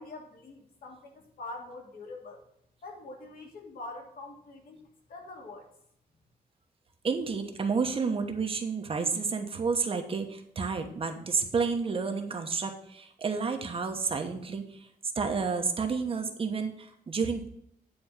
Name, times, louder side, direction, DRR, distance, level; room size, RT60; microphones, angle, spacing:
voice 1, 0.0-2.4 2.8-4.8 5.1-5.7, left 2 dB, 65° left, 0 dB, 2.6 m, -44 dB
voice 2, 7.0-14.9 15.1-17.5, right 5 dB, 35° right, 5 dB, 1.1 m, -30 dB
9.8 x 4.3 x 7.3 m, 0.70 s
wide cardioid pair, 175°, 16 cm